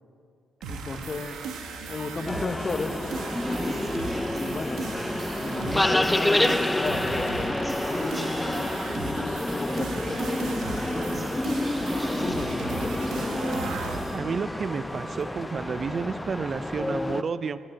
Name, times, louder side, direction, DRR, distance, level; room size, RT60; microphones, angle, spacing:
sound 1, 0.6-14.2, right 5 dB, 80° right, 1.3 m, -37 dB
voice 1, 0.7-1.4 1.9-3.0 3.4-7.6 7.9-11.5 12.1-13.5, left 3 dB, 35° left, 8 dB, 0.9 m, -35 dB
sound 2, 2.3-17.2, left 1 dB, 10° left, 0.5 m, -28 dB
voice 2, 14.1-17.6, right 5 dB, 45° right, 15 dB, 0.5 m, -31 dB
12.0 x 9.2 x 7.8 m, 2.4 s
cardioid pair, 90°, 0 cm